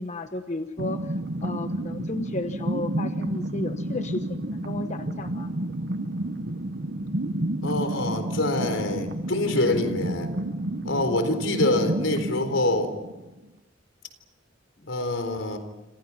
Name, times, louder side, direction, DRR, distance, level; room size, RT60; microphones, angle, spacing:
voice 1, 0.0-5.5, left 2 dB, 40° left, 8 dB, 1.0 m, -33 dB
sound 1, 0.8-13.5, right 1 dB, 55° right, 1.4 m, -30 dB
voice 2, 7.6-10.3 10.8-12.9 14.9-15.6, left 2 dB, 80° left, 8 dB, 4.0 m, -25 dB
28.5 x 26.5 x 5.7 m, 1.1 s
head